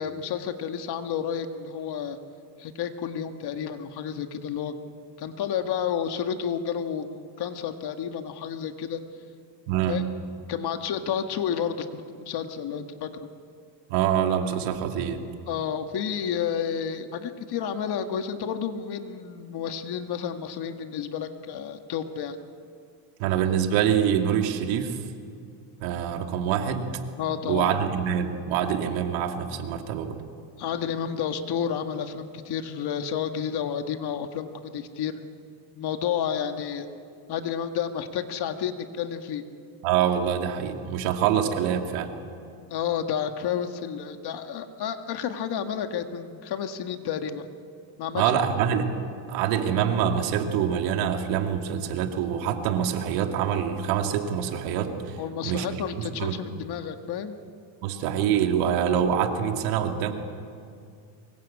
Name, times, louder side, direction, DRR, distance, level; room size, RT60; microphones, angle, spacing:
voice 1, 0.0-2.2 2.6-4.7 5.2-9.0 9.9-10.0 10.5-13.3 15.5-22.4 27.2-27.7 30.6-35.2 35.8-36.9 37.3-39.4 42.7-47.5 48.0-48.4 55.2-57.4, left 8 dB, 50° left, 7 dB, 1.8 m, -31 dB
voice 2, 9.7-10.0 13.9-15.2 23.2-25.0 25.8-26.9 27.5-30.2 39.8-42.1 48.1-48.9 49.3-55.2 55.4-55.7 56.0-56.4 57.8-60.1, right 9 dB, 85° right, 5 dB, 2.5 m, -25 dB
24.0 x 21.0 x 8.5 m, 2.4 s
cardioid pair, 120°, 49 cm